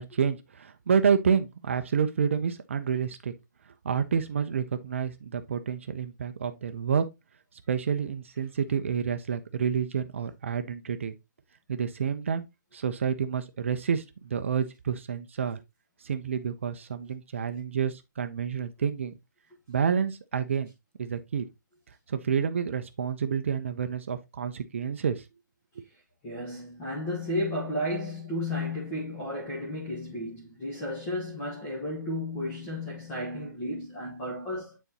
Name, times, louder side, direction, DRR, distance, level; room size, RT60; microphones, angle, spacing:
voice 1, 0.0-3.3 3.8-7.0 7.7-11.1 11.7-12.4 12.7-15.6 16.0-19.2 19.7-20.7 21.0-21.5 22.1-25.2, right 7 dB, 40° right, 0.5 m, -29 dB
voice 2, 26.2-34.8, left 1 dB, 15° left, 1.1 m, -33 dB
9.1 x 4.0 x 2.8 m
hypercardioid pair, 170°, 11 cm